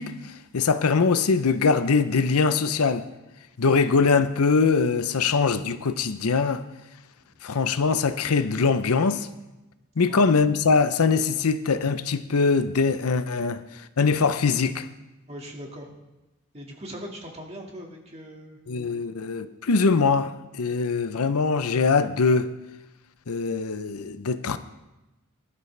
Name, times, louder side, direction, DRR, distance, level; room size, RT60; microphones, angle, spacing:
voice 1, 0.0-3.0 3.6-6.6 7.4-9.3 10.0-14.9 18.7-20.3 20.6-22.5 23.3-24.6, left 4 dB, 90° left, 0.7 m, -22 dB
voice 2, 15.3-15.9 16.5-18.6, equal, 30° right, 2.0 m, -41 dB
20.0 x 12.0 x 3.3 m
head